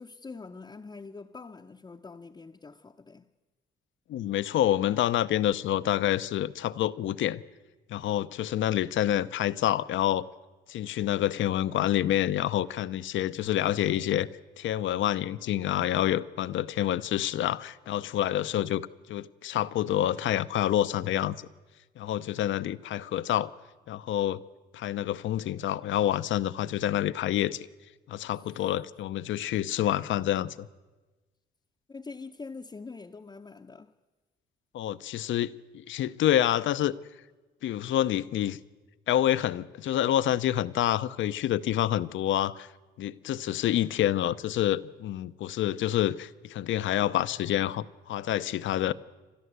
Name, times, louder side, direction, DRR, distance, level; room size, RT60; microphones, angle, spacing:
voice 1, 0.0-3.3 31.9-33.9, left 4 dB, 20° left, 0.7 m, -44 dB
voice 2, 4.1-7.4 7.9-10.2 10.7-14.3 14.6-21.4 22.0-23.5 23.9-24.4 24.7-27.7 28.1-30.7 34.7-36.9 37.6-38.6 39.1-42.7 43.0-48.9, left 12 dB, 75° left, 0.7 m, -27 dB
28.5 x 12.5 x 8.1 m
cardioid pair, 90°, 20 cm